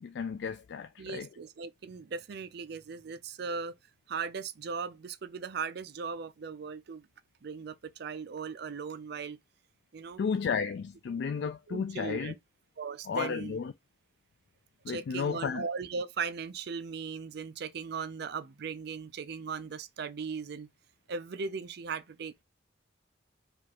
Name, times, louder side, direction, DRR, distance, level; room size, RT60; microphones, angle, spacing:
voice 1, 0.0-1.3 10.2-12.3 13.1-13.7 14.8-15.6, left 6 dB, 60° left, 0.3 m, -33 dB
voice 2, 1.0-3.7 4.1-7.1 7.4-9.4 9.9-10.2 11.7-12.3 12.8-13.6 14.9-20.7 21.1-22.4, right 5 dB, 55° right, 0.4 m, -38 dB
4.8 x 2.4 x 2.9 m
head